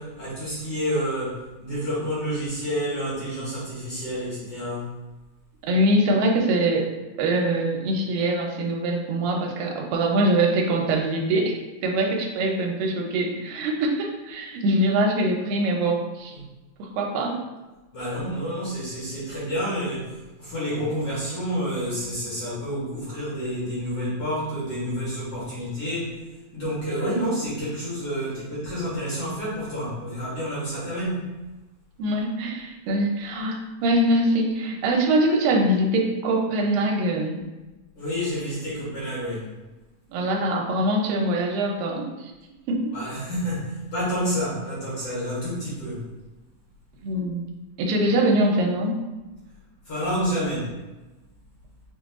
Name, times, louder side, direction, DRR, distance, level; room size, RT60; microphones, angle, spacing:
voice 1, 0.0-4.9 16.3-16.4 17.9-26.1 26.5-31.4 38.0-39.4 42.9-46.0 49.9-50.7, equal, 55° left, -9 dB, 1.9 m, -29 dB
voice 2, 5.7-6.9 7.2-16.3 16.8-17.4 32.0-37.4 40.1-42.3 42.7-42.8 47.0-47.4 47.8-49.0, right 1 dB, 80° right, 1 dB, 2.3 m, -23 dB
5.8 x 2.2 x 3.5 m, 1.1 s
omnidirectional pair, 4.0 m